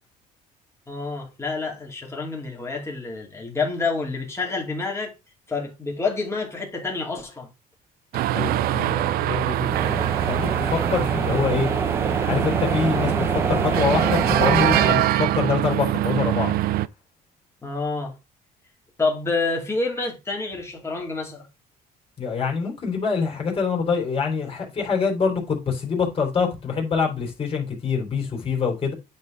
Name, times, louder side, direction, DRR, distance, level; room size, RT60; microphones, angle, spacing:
voice 1, 0.9-5.1 5.5-7.5 17.6-18.1 19.0-21.5, left 3 dB, 15° left, 2.6 m, -28 dB
sound 1, 8.1-16.9, right 14 dB, 65° right, 0.4 m, -23 dB
voice 2, 8.3-11.7 12.3-16.5 22.2-28.9, left 5 dB, 35° left, 3.2 m, -25 dB
sound 2, 9.7-14.9, right 3 dB, 15° right, 0.7 m, -27 dB
9.5 x 4.2 x 3.8 m
cardioid pair, 120°, 17 cm